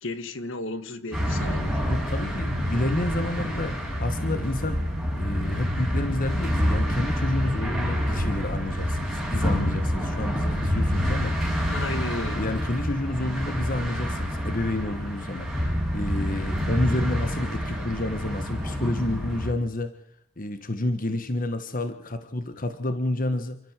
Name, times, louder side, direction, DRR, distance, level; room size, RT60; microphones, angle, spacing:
voice 1, 0.0-1.8 11.5-12.4, left 2 dB, 55° left, 12 dB, 1.7 m, -34 dB
sound 1, 1.1-19.5, equal, ahead, 5.2 m, -27 dB
voice 2, 1.9-4.8 5.1-11.3 12.3-19.9 20.4-23.6, left 1 dB, 40° left, 9 dB, 1.4 m, -30 dB
28.5 x 13.0 x 7.5 m, 0.67 s
head